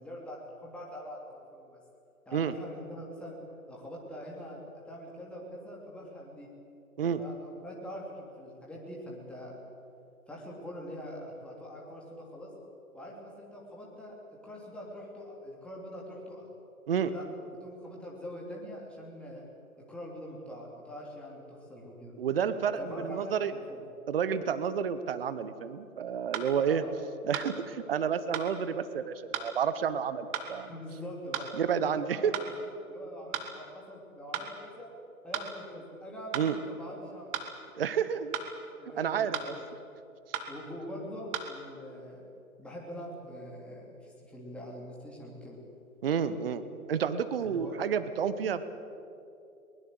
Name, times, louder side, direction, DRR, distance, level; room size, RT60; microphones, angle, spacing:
voice 1, 0.0-1.8 2.2-3.4 3.7-6.5 7.2-9.5 10.3-12.5 12.9-14.2 14.4-16.5 17.1-17.2 17.5-19.4 19.8-22.1 22.8-23.8 26.6-26.9 30.7-31.5 31.8-34.9 35.2-37.5 38.7-39.7 40.5-42.2 42.6-45.6 47.4-47.8, equal, ahead, -3 dB, 3.1 m, -44 dB
voice 2, 22.2-23.5 24.1-26.8 27.2-30.7 31.6-32.3 36.3-36.6 37.7-38.3 38.9-39.6 46.0-46.6 46.9-48.7, right 7 dB, 40° right, 13 dB, 1.1 m, -30 dB
sound 1, 26.3-26.5 27.3-27.5 28.3-28.5 29.3-29.5 30.3-30.5 31.3-31.5 32.3-32.5 33.3-33.5 34.3-34.5 35.3-35.5 36.3-36.5 37.3-37.5 38.3-38.5 39.3-39.5 40.3-40.5 41.3-41.4, right 8 dB, 15° right, 1.1 m, -34 dB
22.5 x 20.5 x 7.9 m, 2.8 s
figure-of-eight pair, 140°, 44 cm